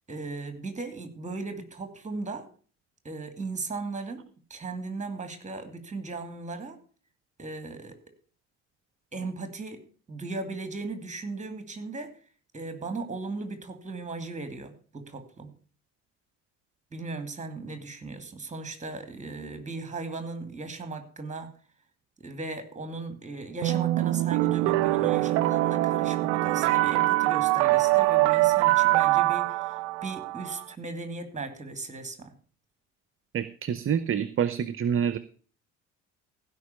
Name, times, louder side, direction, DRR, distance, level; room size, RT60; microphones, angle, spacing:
voice 1, 0.1-2.5 3.0-6.8 7.4-8.0 9.1-9.8 10.1-12.1 12.5-15.5 16.9-21.5 22.2-32.4, right 3 dB, 20° right, 9 dB, 2.6 m, -37 dB
sound 1, 23.6-30.6, right 18 dB, 70° right, 0.5 m, -23 dB
voice 2, 33.3-35.2, right 8 dB, 35° right, 15 dB, 0.7 m, -27 dB
15.5 x 5.4 x 7.0 m, 0.42 s
figure-of-eight pair, 55°, 36 cm